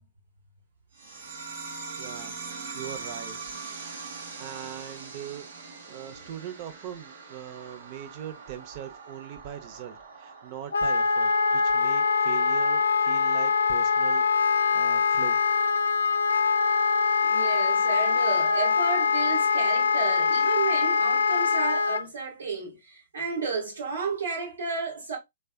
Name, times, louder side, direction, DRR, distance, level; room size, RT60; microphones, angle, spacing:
sound 1, 0.9-12.0, right 4 dB, 70° right, 1.2 m, -42 dB
voice 1, 2.0-2.3 2.7-3.4 3.7-3.9 4.4-15.4 20.3-20.4, right 10 dB, 45° right, 0.7 m, -41 dB
Wind instrument woodwind instrument, 10.7-22.0, left 5 dB, 85° left, 0.3 m, -23 dB
voice 2, 17.2-25.2, right 5 dB, 90° right, 1.7 m, -32 dB
3.4 x 3.3 x 2.3 m
hypercardioid pair, 130°, 0 cm